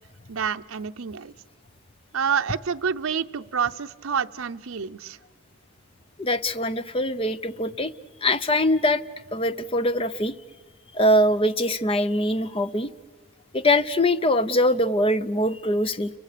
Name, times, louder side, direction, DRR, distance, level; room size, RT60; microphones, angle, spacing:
voice 1, 0.3-1.3 2.1-5.2, right 7 dB, 75° right, 8 dB, 0.7 m, -28 dB
voice 2, 6.2-7.9 8.2-9.0 9.3-10.3 10.9-12.9 13.5-16.1, left 1 dB, 25° left, 13 dB, 0.6 m, -22 dB
30.0 x 23.0 x 6.8 m, 1.5 s
head